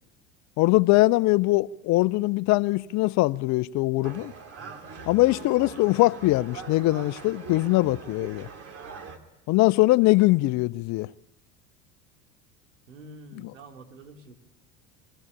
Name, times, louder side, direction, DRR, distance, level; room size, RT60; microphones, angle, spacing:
voice 1, 0.6-4.3 5.1-8.5 9.5-11.1 13.4-13.5, left 20 dB, 50° left, 0.7 m, -22 dB
sound 1, 4.0-9.2, right 5 dB, 40° right, 2.9 m, -42 dB
voice 2, 12.9-14.3, right 2 dB, 85° right, 3.2 m, -46 dB
23.0 x 15.0 x 9.9 m
hypercardioid pair, 85°, 37 cm